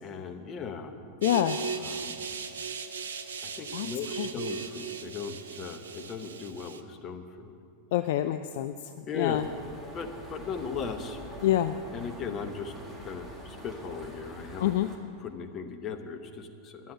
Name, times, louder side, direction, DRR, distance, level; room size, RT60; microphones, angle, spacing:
voice 1, 0.0-1.0 1.8-2.2 3.4-7.6 9.1-9.4 9.9-11.2 11.9-12.7 13.0-14.7 15.2-16.9, left 6 dB, 30° left, 5 dB, 1.0 m, -38 dB
voice 2, 1.2-1.6 3.7-3.9 4.2-4.3 7.9-9.4 11.4-11.8 14.6-14.9, left 13 dB, 55° left, 9 dB, 0.3 m, -27 dB
sound 1, 1.2-6.8, right 5 dB, 65° right, 0.6 m, -37 dB
sound 2, 9.3-15.0, equal, 10° right, 1.9 m, -45 dB
10.5 x 7.6 x 9.8 m, 2.4 s
figure-of-eight pair, 90°, 0 cm